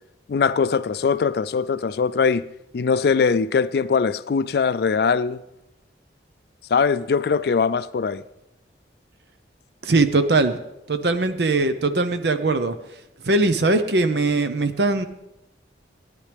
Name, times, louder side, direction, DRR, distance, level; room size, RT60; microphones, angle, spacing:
voice 1, 0.3-2.4 2.7-5.4 6.7-8.2, left 5 dB, 60° left, 0.4 m, -21 dB
voice 2, 9.8-10.6 10.9-12.7 13.2-15.1, right 2 dB, 70° right, 0.8 m, -20 dB
16.5 x 10.0 x 3.4 m
head